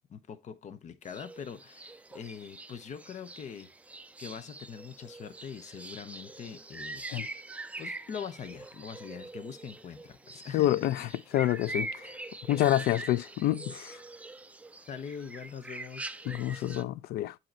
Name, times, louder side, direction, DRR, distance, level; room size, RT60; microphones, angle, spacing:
voice 1, 0.1-3.7 4.2-7.1 7.8-11.2 14.9-16.1, left 7 dB, 45° left, 0.8 m, -43 dB
sound 1, 1.0-16.8, right 2 dB, 10° right, 0.4 m, -44 dB
voice 2, 10.5-11.1 11.3-12.2 12.5-14.0 16.3-17.4, left 13 dB, 70° left, 0.4 m, -28 dB
7.8 x 2.9 x 4.3 m
cardioid pair, 110°, 17 cm